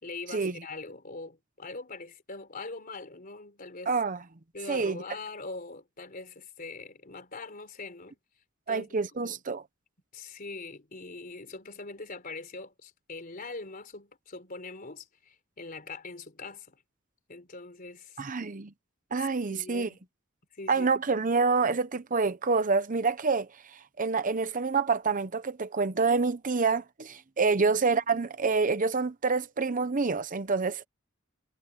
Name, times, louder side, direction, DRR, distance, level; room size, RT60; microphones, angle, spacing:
voice 1, 0.0-4.0 4.5-8.2 8.7-9.4 10.1-16.8 17.3-18.2 19.2-20.0 20.5-20.9 27.4-27.5, left 3 dB, 45° left, 3.7 m, -42 dB
voice 2, 3.9-4.2 4.7-5.0 8.7-9.6 18.2-18.7 19.1-19.9 20.7-30.9, right 4 dB, 40° right, 0.8 m, -27 dB
head